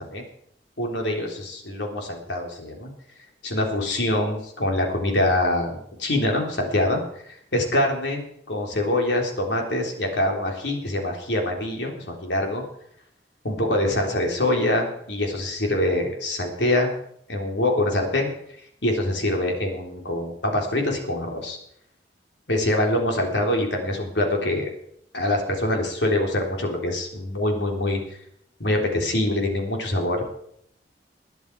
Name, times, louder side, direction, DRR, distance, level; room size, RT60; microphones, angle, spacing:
voice 1, 0.8-2.9 3.4-7.0 7.5-12.6 13.4-16.9 17.3-18.3 18.8-21.6 22.5-24.7 25.1-28.0 28.6-30.2, left 1 dB, 80° left, 1 dB, 3.7 m, -24 dB
20.5 x 10.5 x 4.8 m, 0.71 s
head